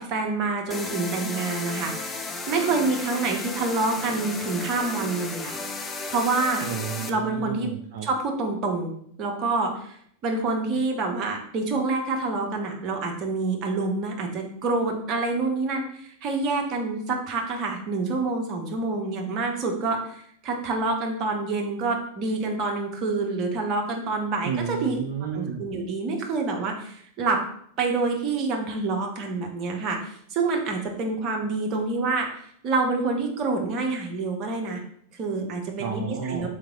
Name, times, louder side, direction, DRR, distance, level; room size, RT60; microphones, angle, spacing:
voice 1, 0.0-2.2 2.5-5.5 6.1-6.7 7.1-7.7 8.0-25.0 25.3-27.5 27.8-34.8 35.1-36.5, right 3 dB, 35° right, 2 dB, 0.9 m, -27 dB
sound 1, 0.7-7.1, left 3 dB, 20° left, 0.5 m, -34 dB
voice 2, 6.6-8.1 24.4-25.6 35.8-36.5, right 7 dB, 55° right, 1 dB, 0.5 m, -31 dB
3.8 x 3.2 x 3.6 m, 0.65 s
figure-of-eight pair, 90°, 0 cm